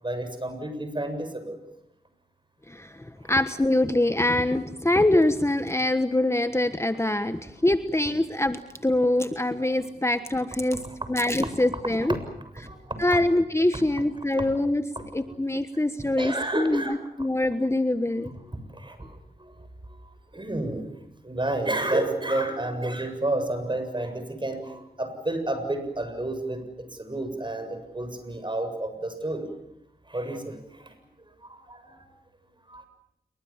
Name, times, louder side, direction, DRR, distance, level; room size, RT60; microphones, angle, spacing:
voice 1, 0.0-1.6 3.2-3.3 10.7-11.1 12.1-12.2 12.6-13.0 14.4-14.5 15.0-15.4 16.2-17.0 18.5-20.8 21.2-29.5 30.1-31.0 31.4-32.1 32.7-32.9, right 2 dB, 30° right, 8 dB, 7.5 m, -31 dB
voice 2, 2.7-10.8 11.1-12.2 13.0-14.8 15.1-18.3, left 1 dB, 15° left, 10 dB, 1.3 m, -24 dB
28.5 x 23.0 x 7.4 m, 0.84 s
cardioid pair, 55°, 16 cm